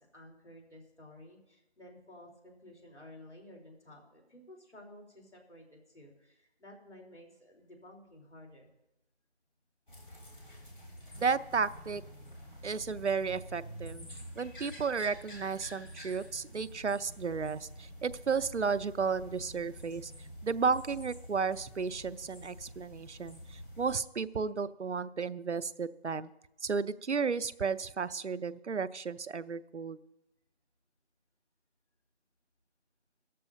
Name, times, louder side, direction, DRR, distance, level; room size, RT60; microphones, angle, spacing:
voice 1, 0.1-8.7, left 1 dB, 80° left, 0 dB, 3.8 m, -53 dB
sound 1, 9.9-23.9, equal, 50° left, 3.5 m, -48 dB
voice 2, 11.2-12.0 12.6-14.1 14.4-20.1 20.4-26.3 26.6-30.0, right 5 dB, 85° right, 17 dB, 0.6 m, -33 dB
16.0 x 13.0 x 2.7 m, 0.89 s
figure-of-eight pair, 175°, 34 cm